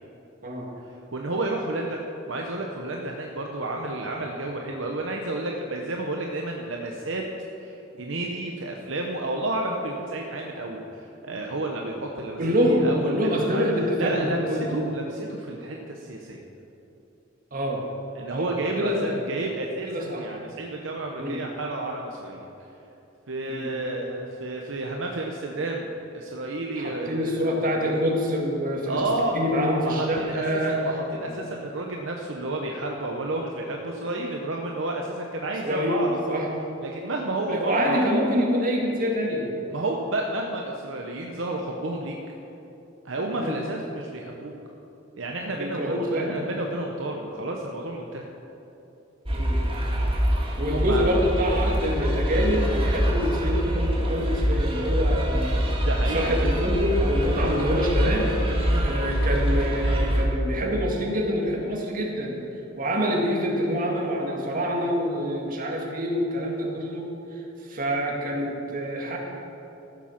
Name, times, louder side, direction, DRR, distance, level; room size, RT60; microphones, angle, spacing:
voice 1, 1.1-2.0 2.3-7.2 7.6-12.4 12.6-13.6 14.0-16.4 18.1-19.9 20.1-22.5 23.3-27.7 28.9-29.4 29.8-36.4 36.8-38.1 39.7-42.2 43.0-44.5 45.2-48.2 50.7-51.1 55.8-56.3 58.1-58.3 58.6-59.0, right 2 dB, 70° right, 1 dB, 0.9 m, -31 dB
voice 2, 12.4-14.7 17.5-17.8 18.3-19.3 19.9-20.3 21.2-21.4 23.5-23.7 26.7-29.0 29.3-30.8 31.3-31.4 35.6-36.0 36.3-36.5 37.5-39.5 43.3-43.6 45.6-46.4 49.3-49.6 50.6-58.3 58.8-62.4 62.8-69.2, equal, 45° right, -1 dB, 2.0 m, -26 dB
sound 1, 49.2-60.2, equal, 30° right, 1.6 m, -24 dB
14.5 x 7.4 x 5.9 m, 3.0 s
head